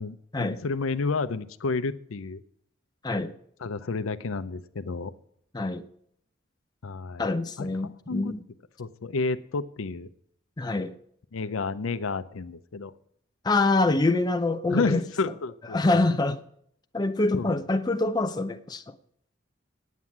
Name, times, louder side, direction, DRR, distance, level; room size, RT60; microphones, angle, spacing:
voice 1, 0.0-2.4 3.6-5.1 6.8-7.3 7.6-8.3 8.8-10.1 11.3-12.9 14.7-16.0 17.3-17.5, left 4 dB, 85° left, 0.6 m, -30 dB
voice 2, 3.0-3.3 5.5-5.9 7.2-8.4 10.6-11.0 13.4-15.0 15.7-16.4 16.9-19.0, left 2 dB, 20° left, 0.5 m, -25 dB
9.4 x 8.4 x 7.2 m
head